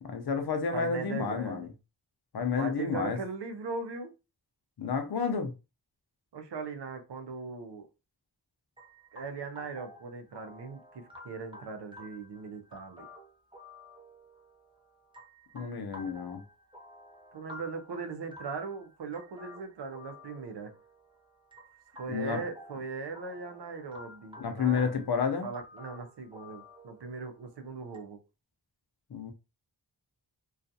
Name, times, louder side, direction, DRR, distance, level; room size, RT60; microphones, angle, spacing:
voice 1, 0.0-1.7 2.3-3.2 4.8-5.5 15.5-16.4 22.1-22.4 24.4-25.5 29.1-29.3, left 6 dB, 65° left, 0.6 m, -30 dB
voice 2, 0.7-1.7 2.5-4.1 6.3-7.9 9.1-13.1 17.3-20.7 22.0-28.2, right 4 dB, 85° right, 0.6 m, -39 dB
sound 1, 8.8-28.0, left 1 dB, 10° right, 0.6 m, -52 dB
2.3 x 2.3 x 2.6 m
wide cardioid pair, 60°, 40 cm